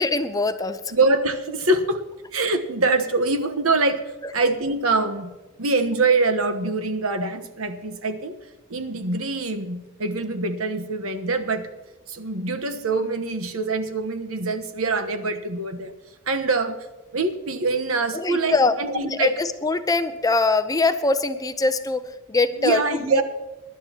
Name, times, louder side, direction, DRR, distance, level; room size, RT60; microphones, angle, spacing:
voice 1, 0.0-0.9 4.2-4.3 18.1-18.7 19.0-23.2, left 3 dB, 15° left, 9 dB, 0.6 m, -23 dB
voice 2, 0.9-2.0 2.3-4.0 4.3-5.3 5.6-8.3 8.7-11.7 12.1-15.9 16.3-16.8 17.1-19.4 22.5-23.2, right 3 dB, 70° right, 8 dB, 1.2 m, -24 dB
23.5 x 11.5 x 2.9 m, 1.2 s
head